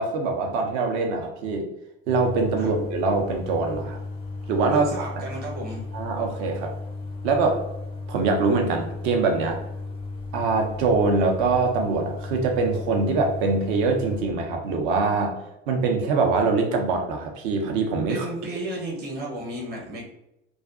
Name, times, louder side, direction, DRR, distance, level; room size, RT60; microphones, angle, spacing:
voice 1, 0.0-1.6 2.1-4.0 4.5-5.1 5.9-6.7 7.2-7.6 8.1-9.6 10.3-15.4 15.7-18.3, right 4 dB, 50° right, 3 dB, 0.6 m, -23 dB
sound 1, 2.1-14.2, left 3 dB, 15° left, 0.4 m, -35 dB
voice 2, 4.7-5.9 18.1-20.1, right 1 dB, 30° right, -3 dB, 0.9 m, -33 dB
2.4 x 2.4 x 2.4 m, 0.85 s
figure-of-eight pair, 65°, 32 cm